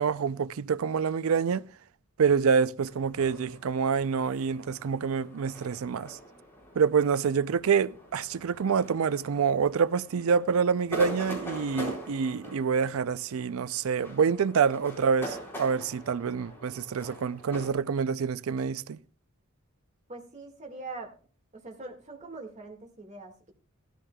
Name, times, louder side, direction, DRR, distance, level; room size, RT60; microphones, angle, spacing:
voice 1, 0.0-1.7 2.2-6.2 6.8-19.0, right 6 dB, 70° right, 0.4 m, -27 dB
sound 1, 2.8-17.7, equal, 10° left, 4.3 m, -43 dB
voice 2, 20.1-21.2 21.5-23.5, right 3 dB, 35° right, 1.9 m, -42 dB
16.0 x 13.5 x 2.3 m
head